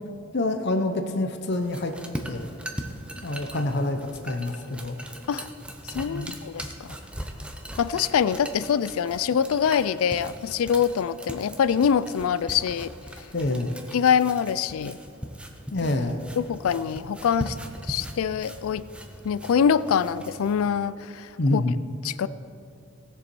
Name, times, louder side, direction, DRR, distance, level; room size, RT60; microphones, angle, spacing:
voice 1, 0.3-1.9 2.3-2.5 3.2-5.0 6.0-6.4 13.3-13.7 15.7-16.2 21.4-21.8, left 2 dB, 50° left, 5 dB, 0.7 m, -27 dB
sound 1, 1.5-20.7, right 1 dB, 5° right, 0.7 m, -40 dB
voice 2, 5.8-7.0 7.8-12.9 13.9-15.0 16.4-17.6 17.9-18.8 19.2-21.6 22.0-22.3, left 7 dB, 80° left, 17 dB, 0.4 m, -24 dB
18.5 x 6.9 x 4.6 m, 2.5 s
head